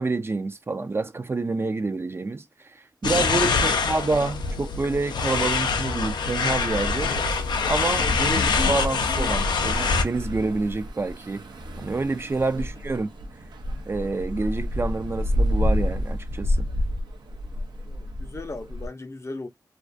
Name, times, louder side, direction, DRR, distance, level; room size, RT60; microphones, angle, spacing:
voice 1, 0.0-7.1 7.7-11.4 11.8-13.1 13.9-16.7, right 3 dB, 35° right, 0.3 m, -28 dB
sound 1, 3.0-10.0, left 5 dB, 90° left, 0.4 m, -24 dB
voice 2, 3.5-3.9 12.6-12.7 17.9-19.5, left 2 dB, 40° left, 0.5 m, -38 dB
sound 2, 6.5-18.9, left 1 dB, 85° right, 0.5 m, -29 dB
2.3 x 2.3 x 2.4 m
cardioid pair, 50°, 7 cm